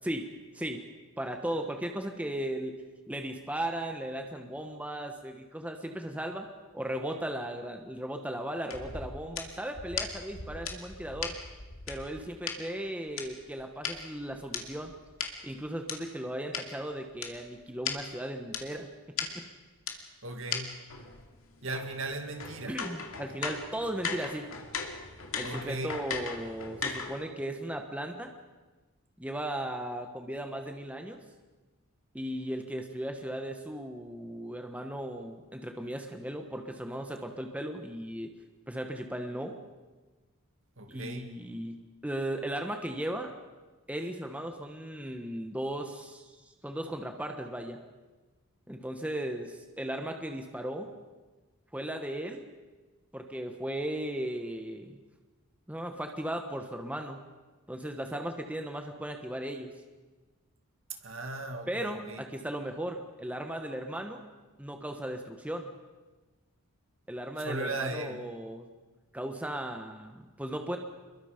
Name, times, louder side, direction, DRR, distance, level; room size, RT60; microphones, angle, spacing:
voice 1, 1.2-2.7 3.1-6.5 6.7-11.3 11.9-14.9 15.4-18.9 22.7-24.5 25.4-28.3 29.2-31.2 32.1-38.3 38.7-39.6 40.9-43.3 43.9-47.8 48.7-50.9 51.7-52.5 53.1-55.0 55.7-57.2 57.7-59.7 61.7-64.2 64.6-65.7 67.1-68.7 69.1-70.8, right 1 dB, 5° right, 1.2 m, -36 dB
sound 1, 8.7-12.6 13.2-16.0 16.5-16.6 17.2-17.3 17.6-17.7 17.9-18.0 18.5-18.6 19.2-19.3 19.9-20.0 20.5-20.6 20.9-27.3, left 6 dB, 70° left, 2.5 m, -37 dB
voice 2, 20.2-20.8 21.6-22.8 25.4-26.0 40.8-41.3 60.9-62.2 67.4-68.2, right 2 dB, 60° right, 2.1 m, -37 dB
27.5 x 22.0 x 5.2 m
head